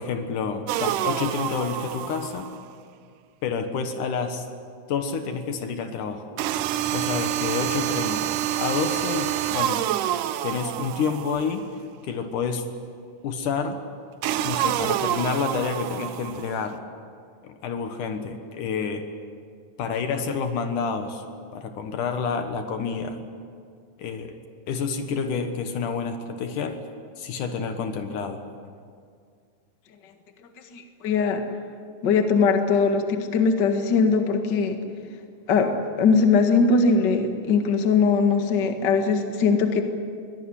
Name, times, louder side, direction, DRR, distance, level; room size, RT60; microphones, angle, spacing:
voice 1, 0.0-2.5 3.4-4.5 4.9-6.3 6.9-10.0 10.4-11.7 12.0-12.7 13.2-13.8 14.4-16.8 17.4-19.1 19.8-21.3 21.5-23.2 24.0-24.4 24.7-26.8 27.2-28.4, left 5 dB, 70° left, 7 dB, 2.8 m, -29 dB
sound 1, 0.7-2.6 6.4-11.7 14.2-16.6, right 12 dB, 75° right, 2.2 m, -27 dB
voice 2, 30.7-31.4 32.0-34.8 35.5-39.8, left 4 dB, 40° left, 5 dB, 1.9 m, -21 dB
23.0 x 18.0 x 9.9 m, 2.2 s
omnidirectional pair, 4.0 m